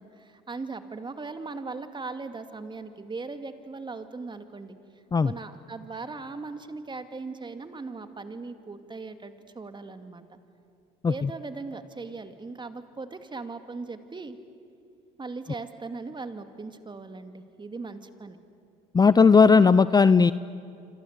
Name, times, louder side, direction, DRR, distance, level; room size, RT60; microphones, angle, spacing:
voice 1, 0.0-4.8 5.2-10.4 11.1-14.4 15.2-18.4, right 3 dB, 25° right, 8 dB, 2.4 m, -39 dB
voice 2, 18.9-20.3, left 5 dB, 20° left, 16 dB, 0.6 m, -17 dB
27.5 x 26.0 x 8.3 m, 2.4 s
supercardioid pair, 75°, 19 cm